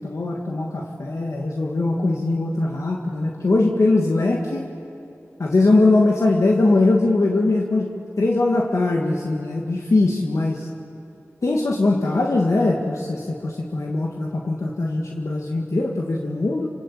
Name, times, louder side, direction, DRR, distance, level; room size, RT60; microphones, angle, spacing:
voice 1, 0.0-4.7 5.4-7.9 8.2-10.7 11.4-16.7, left 2 dB, 80° left, -1 dB, 1.9 m, -21 dB
27.5 x 19.5 x 8.5 m, 2.6 s
cardioid pair, 45°, 5 cm